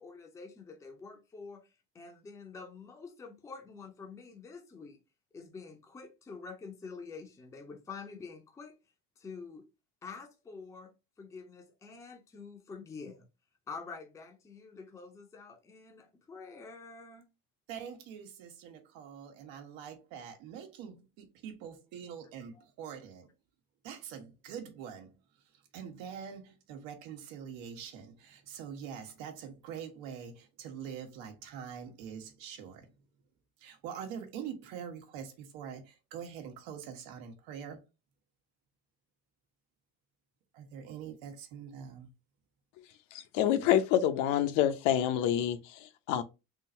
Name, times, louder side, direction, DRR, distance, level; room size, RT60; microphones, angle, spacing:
voice 1, 0.0-1.6 1.9-5.0 5.3-8.7 9.2-9.6 10.0-10.9 11.2-13.3 13.7-17.3, left 4 dB, 10° left, 0.5 m, -47 dB
voice 2, 17.7-23.3 23.8-25.2 25.7-32.9 33.6-37.8 40.5-42.1, right 8 dB, 85° right, 1.1 m, -44 dB
voice 3, 43.1-46.2, left 11 dB, 65° left, 0.7 m, -27 dB
3.7 x 2.5 x 4.1 m
cardioid pair, 170°, 33 cm